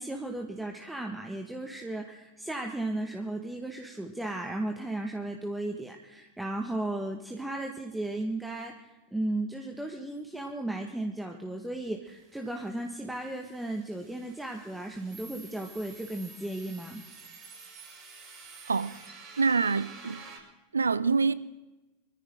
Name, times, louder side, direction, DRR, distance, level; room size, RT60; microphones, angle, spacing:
voice 1, 0.0-17.0, right 1 dB, 5° right, 1.6 m, -35 dB
sound 1, 12.1-20.4, right 4 dB, 35° right, 6.3 m, -50 dB
voice 2, 18.7-19.0 19.4-20.3 20.7-21.3, right 4 dB, 85° right, 0.6 m, -26 dB
24.0 x 14.5 x 3.8 m
figure-of-eight pair, 90°, 0 cm